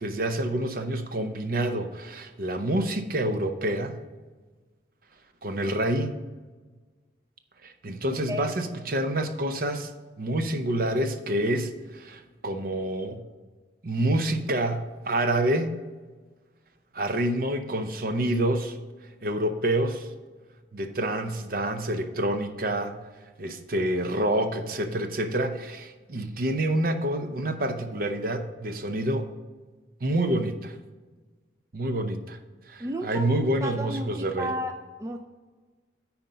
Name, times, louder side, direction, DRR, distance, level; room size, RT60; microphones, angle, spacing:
voice 1, 0.0-4.0 5.4-6.1 7.6-9.9 10.2-13.2 13.8-15.7 16.9-18.8 19.2-20.1 20.7-23.0 23.4-29.3 30.0-30.7 31.7-32.4 32.7-34.6, right 1 dB, 50° right, 7 dB, 0.7 m, -27 dB
voice 2, 32.8-33.3 33.6-34.7 35.0-35.2, equal, 15° right, 4 dB, 0.3 m, -32 dB
9.4 x 4.3 x 5.5 m, 1.3 s
head